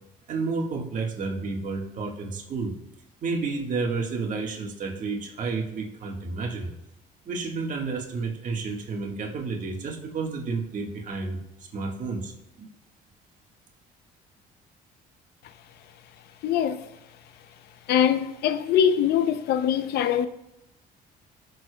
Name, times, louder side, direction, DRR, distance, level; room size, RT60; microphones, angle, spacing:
voice 1, 0.3-2.8 3.2-6.7 7.2-12.7, right 4 dB, 50° right, 1.6 m, -31 dB
voice 2, 16.4-16.8 17.9-20.3, left 9 dB, 75° left, 0.6 m, -23 dB
18.0 x 6.7 x 2.3 m
cardioid pair, 110°, 17 cm